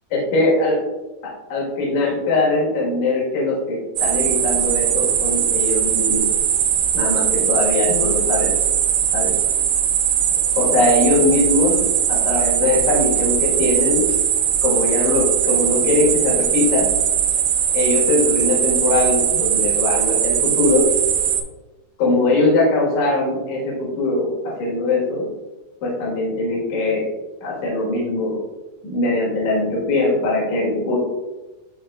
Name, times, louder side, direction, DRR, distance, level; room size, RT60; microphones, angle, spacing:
voice 1, 0.1-0.8 1.2-6.3 6.9-8.5 9.1-9.3 10.6-11.8 12.1-14.0 14.6-16.9 17.7-20.9 22.0-25.3 25.8-27.0 27.4-28.4 28.8-31.0, left 2 dB, 55° left, -4 dB, 2.5 m, -21 dB
sound 1, 4.0-21.4, right 9 dB, 90° right, 2.8 m, -20 dB
10.5 x 3.7 x 2.4 m, 1.1 s
omnidirectional pair, 4.7 m